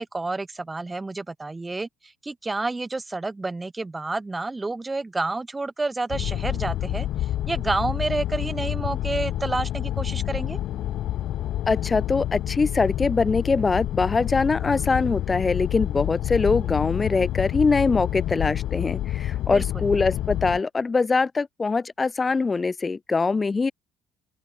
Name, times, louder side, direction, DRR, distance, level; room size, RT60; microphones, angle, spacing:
voice 1, 0.0-7.1 7.5-10.6 19.5-19.9, right 3 dB, 15° right, 2.9 m, -29 dB
sound 1, 6.1-20.6, left 13 dB, 60° left, 6.3 m, -28 dB
voice 2, 11.7-23.7, left 4 dB, 20° left, 2.8 m, -23 dB
open air
cardioid pair, 130°, 0 cm